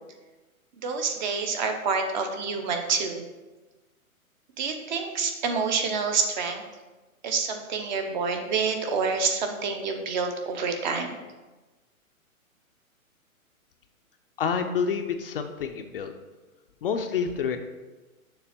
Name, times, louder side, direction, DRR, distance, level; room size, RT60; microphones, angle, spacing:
voice 1, 0.8-3.2 4.6-6.6 7.2-11.2, right 5 dB, 35° right, 5 dB, 0.7 m, -27 dB
voice 2, 14.4-16.1 16.8-17.6, left 6 dB, 40° left, 6 dB, 0.5 m, -28 dB
6.8 x 3.4 x 5.8 m, 1.2 s
hypercardioid pair, 140°, 43 cm